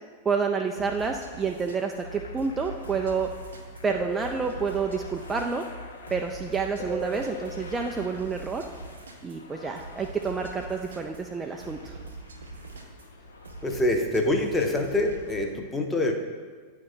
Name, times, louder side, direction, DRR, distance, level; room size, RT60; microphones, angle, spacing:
voice 1, 0.2-3.3 3.8-5.7 6.1-8.7 9.2-12.0, right 5 dB, 15° right, 3 dB, 0.3 m, -29 dB
sound 1, 0.8-15.5, right 3 dB, 70° right, 0.6 m, -44 dB
sound 2, 1.9-13.8, left 2 dB, 65° left, 0.5 m, -46 dB
sound 3, 3.9-5.0 6.8-7.5, equal, 50° left, 1.2 m, -36 dB
voice 2, 13.6-16.1, left 1 dB, 10° left, 2 dB, 0.7 m, -25 dB
9.4 x 3.1 x 3.8 m, 1.5 s
figure-of-eight pair, 90°, 0 cm